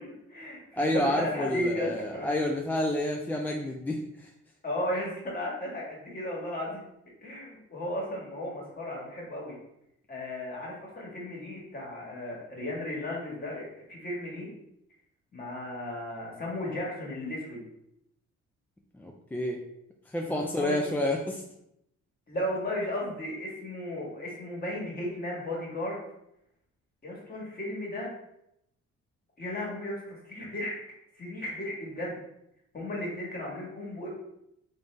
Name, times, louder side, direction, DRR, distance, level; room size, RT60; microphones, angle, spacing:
voice 1, 0.0-2.3 4.6-6.8 7.2-9.6 10.1-14.5 15.3-17.6 20.2-20.8 22.3-26.0 27.0-28.1 29.4-30.8 31.2-32.2 32.7-34.1, left 1 dB, 30° left, -3 dB, 1.4 m, -35 dB
voice 2, 0.8-4.3 19.0-19.6 20.1-21.4, left 1 dB, 5° left, 0 dB, 0.3 m, -29 dB
3.6 x 2.6 x 3.2 m, 0.80 s
cardioid pair, 90°, 30 cm